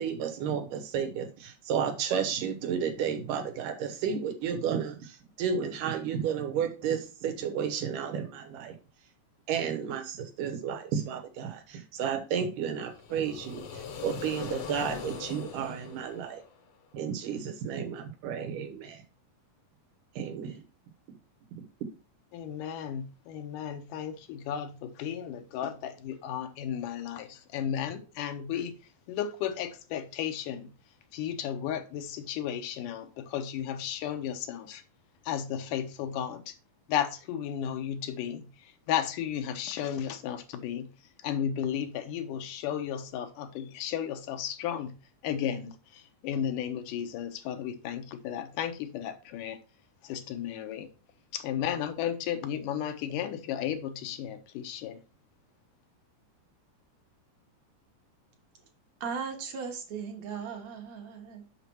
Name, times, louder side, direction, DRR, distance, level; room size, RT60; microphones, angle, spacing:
voice 1, 0.0-8.8 9.5-16.4 16.9-19.0 20.2-20.6 21.6-21.7, right 7 dB, 85° right, 2.8 m, -32 dB
sound 1, 12.8-16.9, left 6 dB, 65° left, 1.4 m, -41 dB
voice 2, 22.3-28.8 29.1-30.7 31.1-34.8 35.3-36.5 36.9-38.5 38.9-40.9 41.2-45.0 45.2-49.6 50.0-50.9 51.3-55.0, left 9 dB, 90° left, 2.4 m, -34 dB
voice 3, 59.0-61.4, right 6 dB, 60° right, 2.3 m, -37 dB
6.6 x 5.9 x 4.5 m
omnidirectional pair, 3.7 m